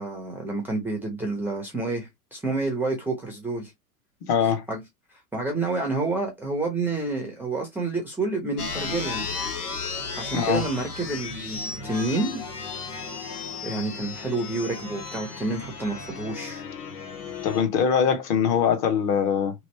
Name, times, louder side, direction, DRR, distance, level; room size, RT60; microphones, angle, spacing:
voice 1, 0.0-3.7 4.4-4.8 5.1-9.3 10.2-12.4 13.6-16.6, right 3 dB, 5° right, 0.6 m, -29 dB
voice 2, 4.2-4.6 10.3-10.6 17.4-19.5, left 7 dB, 40° left, 1.0 m, -22 dB
sound 1, 8.6-17.6, left 4 dB, 80° left, 1.5 m, -34 dB
3.1 x 2.6 x 3.1 m
hypercardioid pair, 105°, 46 cm